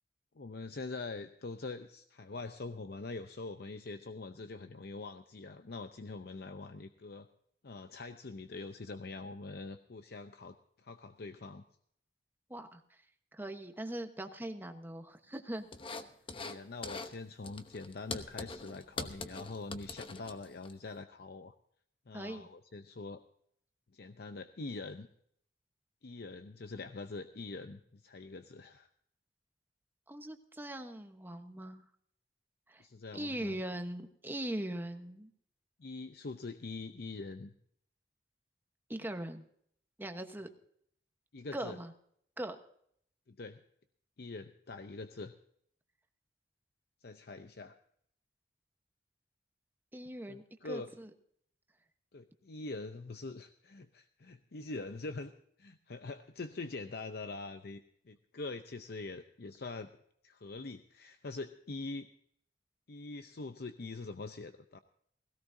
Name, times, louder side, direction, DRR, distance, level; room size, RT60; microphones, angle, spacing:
voice 1, 0.4-7.3 7.6-10.6 10.8-11.6 16.3-21.5 22.1-23.2 23.9-25.1 26.0-28.9 32.8-33.6 35.8-37.5 41.3-41.8 43.3-43.6 44.2-45.3 47.0-47.8 50.3-50.9 52.1-55.3 55.6-57.8 58.1-59.9 60.2-62.1 62.9-64.8, left 3 dB, 65° left, 8 dB, 0.7 m, -44 dB
voice 2, 12.5-13.0 13.3-15.7 22.1-22.5 30.1-31.8 32.7-32.8 33.1-35.3 38.9-39.4 40.0-40.5 41.5-41.9 42.4-42.6 49.9-51.1, right 1 dB, 10° right, 6 dB, 1.1 m, -41 dB
sound 1, 15.7-16.6 16.8-17.1 17.4-20.7, left 3 dB, 30° left, 0.9 m, -42 dB
17.5 x 17.0 x 2.7 m, 0.66 s
head